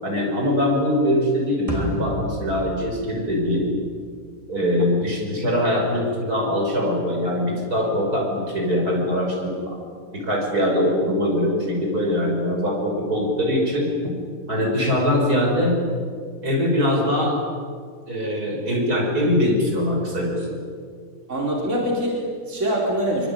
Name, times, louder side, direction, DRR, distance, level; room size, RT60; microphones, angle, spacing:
voice 1, 0.0-3.7 4.5-9.8 10.1-14.1 14.5-15.8 16.4-17.4 18.1-20.6, left 1 dB, 85° right, -1 dB, 6.5 m, -22 dB
sound 1, 1.7-4.1, right 1 dB, 20° right, 3.8 m, -31 dB
voice 2, 21.3-23.3, equal, 50° right, -2 dB, 4.7 m, -24 dB
24.0 x 24.0 x 9.4 m, 2.1 s
omnidirectional pair, 1.6 m